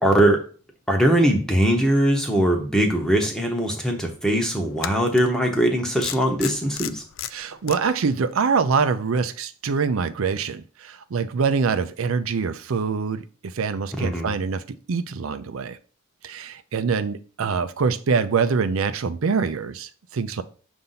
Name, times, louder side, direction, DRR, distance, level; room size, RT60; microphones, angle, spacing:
voice 1, 0.0-0.5 0.9-7.0 14.0-14.3, right 1 dB, 5° left, 0.9 m, -21 dB
sound 1, 4.8-5.3 6.0-7.8, left 11 dB, 75° left, 0.4 m, -33 dB
voice 2, 7.3-15.8 16.2-20.4, right 5 dB, 85° right, 0.5 m, -24 dB
6.8 x 2.6 x 5.6 m
head